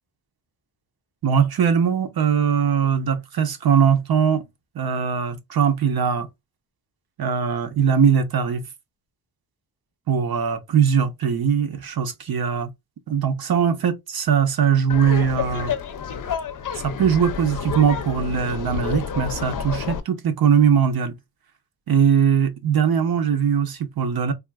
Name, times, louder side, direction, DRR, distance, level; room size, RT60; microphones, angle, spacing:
voice 1, 1.2-4.4 4.7-6.3 7.2-8.6 10.1-12.7 13.1-15.7 16.8-21.1 21.9-24.3, right 7 dB, 60° right, 0.8 m, -20 dB
Laughter, 14.9-20.0, left 7 dB, 50° left, 0.6 m, -29 dB
3.6 x 2.4 x 2.2 m
cardioid pair, 75°, 40 cm